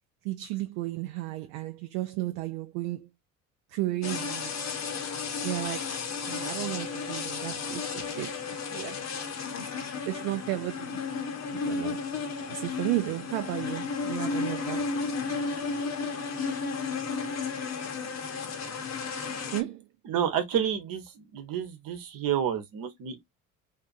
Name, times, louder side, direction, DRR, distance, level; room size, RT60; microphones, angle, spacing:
voice 1, 0.2-3.1 3.7-4.5 5.4-6.0 6.3-8.4 8.7-9.0 10.1-11.0 11.5-12.1 12.4-14.9 19.5-19.8, right 16 dB, 70° right, 0.6 m, -33 dB
sound 1, 4.0-19.6, left 4 dB, 40° left, 0.9 m, -33 dB
voice 2, 20.1-23.2, right 9 dB, 55° right, 1.1 m, -30 dB
2.5 x 2.5 x 2.5 m
hypercardioid pair, 55°, 41 cm